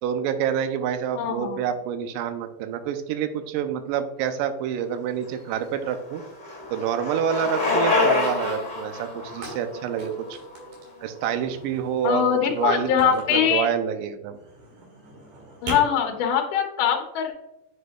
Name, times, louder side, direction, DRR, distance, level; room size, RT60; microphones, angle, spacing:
voice 1, 0.0-6.2 6.7-10.3 11.0-14.4, right 8 dB, 80° right, 8 dB, 2.1 m, -27 dB
sound 1, 0.7-2.2 2.4-3.9 4.2-4.7 5.0-5.3 5.6-5.7 6.0-6.1 6.5-11.0 11.4-13.7 14.3-15.8, right 2 dB, 60° right, 3.0 m, -43 dB
voice 2, 1.1-1.6 12.0-13.7 15.6-17.3, left 8 dB, 75° left, 3 dB, 2.2 m, -22 dB
Bicycle, 5.3-11.3, left 3 dB, 15° left, 1.5 m, -27 dB
7.7 x 5.3 x 2.3 m, 0.88 s
omnidirectional pair, 4.0 m